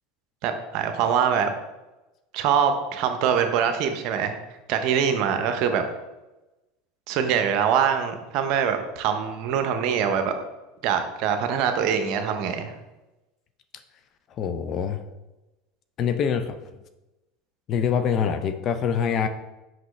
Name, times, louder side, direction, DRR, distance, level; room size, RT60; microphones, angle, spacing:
voice 1, 0.4-1.5 2.3-4.4 4.7-5.8 7.1-10.3 10.8-12.7, right 7 dB, 60° right, 7 dB, 0.8 m, -23 dB
voice 2, 14.3-15.0 16.0-16.6 17.7-19.3, left 7 dB, 45° left, 10 dB, 0.6 m, -25 dB
6.0 x 5.3 x 3.2 m, 1.0 s
hypercardioid pair, 85°, 0 cm